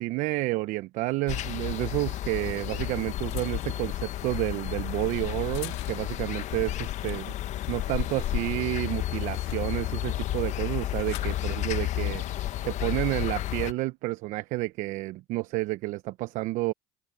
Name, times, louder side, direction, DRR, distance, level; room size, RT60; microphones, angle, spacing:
voice 1, 0.0-7.3 7.7-12.2 12.6-16.7, right 20 dB, 65° right, 1.0 m, -30 dB
sound 1, 1.1-1.2 2.4-6.3 6.8-7.1 7.4-10.0 10.7-11.4 12.3-12.6, left 21 dB, 85° left, 4.4 m, -48 dB
sound 2, 1.3-13.7, left 13 dB, 60° left, 1.4 m, -32 dB
open air
hypercardioid pair, 65°, 14 cm